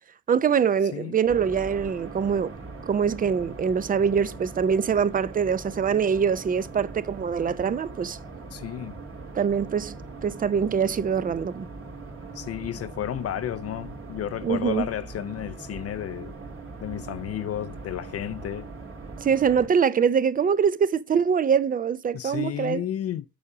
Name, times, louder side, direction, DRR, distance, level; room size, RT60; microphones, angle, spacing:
voice 1, 0.3-2.6 2.9-8.2 9.3-10.0 10.2-11.7 14.4-14.9 19.2-22.8, right 7 dB, 30° right, 0.5 m, -24 dB
sound 1, 1.3-19.7, right 3 dB, 45° right, 1.9 m, -41 dB
voice 2, 8.5-8.9 12.3-16.3 16.8-18.7 22.1-23.2, left 11 dB, 55° left, 0.5 m, -32 dB
7.1 x 4.9 x 4.8 m
cardioid pair, 90°, 30 cm